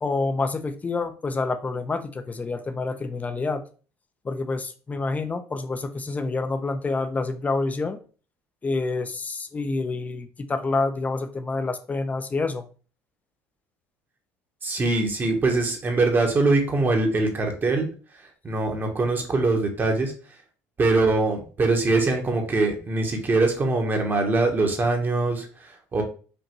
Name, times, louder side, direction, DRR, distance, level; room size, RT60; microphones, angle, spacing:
voice 1, 0.0-3.6 4.2-8.0 8.6-12.6, left 3 dB, 20° left, 10 dB, 0.5 m, -28 dB
voice 2, 14.6-17.9 18.4-20.1 20.8-26.0, right 3 dB, 30° right, 3 dB, 1.0 m, -23 dB
5.3 x 2.5 x 3.0 m, 0.38 s
cardioid pair, 105°, 7 cm